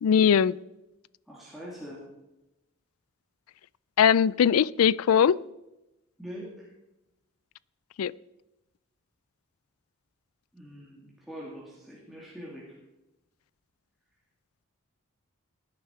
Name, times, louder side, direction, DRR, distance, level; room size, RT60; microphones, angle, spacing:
voice 1, 0.0-0.6 4.0-5.4 8.0-8.1, left 8 dB, 80° left, 22 dB, 0.4 m, -20 dB
voice 2, 1.3-2.1 6.2-6.7 10.5-12.8, equal, ahead, -6 dB, 2.3 m, -43 dB
17.0 x 9.6 x 4.4 m, 0.97 s
head